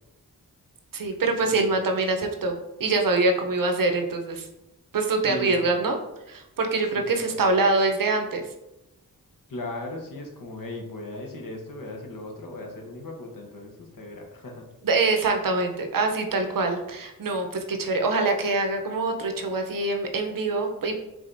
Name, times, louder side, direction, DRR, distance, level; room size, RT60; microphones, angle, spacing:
voice 1, 0.9-4.5 4.9-6.0 6.3-8.4 14.8-20.9, right 3 dB, 65° right, 4 dB, 0.7 m, -24 dB
voice 2, 5.3-5.7 6.9-7.0 9.5-14.7, left 2 dB, 65° left, 1 dB, 1.0 m, -37 dB
4.9 x 3.7 x 2.6 m, 0.91 s
wide cardioid pair, 105°, 35 cm